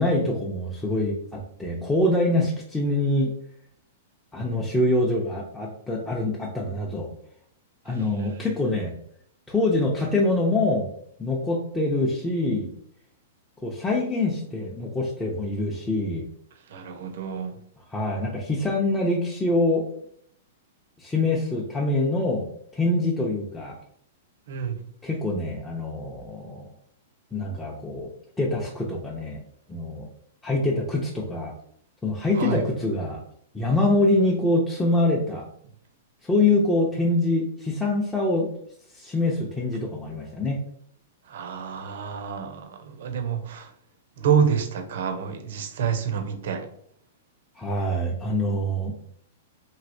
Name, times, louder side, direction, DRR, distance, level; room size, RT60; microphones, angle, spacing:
voice 1, 0.0-3.3 4.3-7.1 7.8-8.9 9.5-10.9 11.2-12.7 13.6-16.2 17.9-19.8 21.0-22.5 22.7-23.8 25.0-26.6 27.3-28.1 28.4-29.4 29.7-30.1 30.4-31.5 32.0-33.2 33.5-35.5 36.2-38.5 38.9-40.6 47.6-48.9, left 2 dB, 10° left, 0.5 m, -25 dB
voice 2, 7.9-8.4 16.7-17.6 24.5-24.8 32.3-32.6 41.3-43.7 44.2-46.7, right 7 dB, 65° right, 0.6 m, -28 dB
3.1 x 2.7 x 2.6 m
hypercardioid pair, 120°, 0 cm